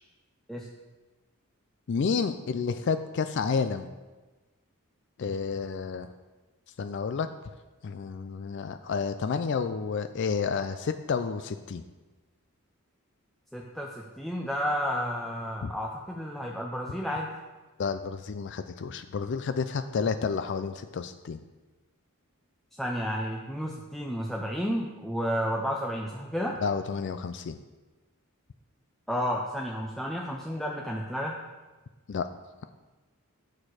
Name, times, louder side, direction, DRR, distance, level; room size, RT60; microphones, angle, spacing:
voice 1, 1.9-3.9 5.2-6.1 6.8-7.3 7.8-11.8 15.6-15.7 17.8-21.4 26.6-27.6 32.1-32.3, left 5 dB, 55° left, 10 dB, 0.4 m, -30 dB
voice 2, 13.5-17.3 22.8-26.6 29.1-31.4, equal, ahead, -2 dB, 0.5 m, -31 dB
8.7 x 6.3 x 4.8 m, 1.2 s
head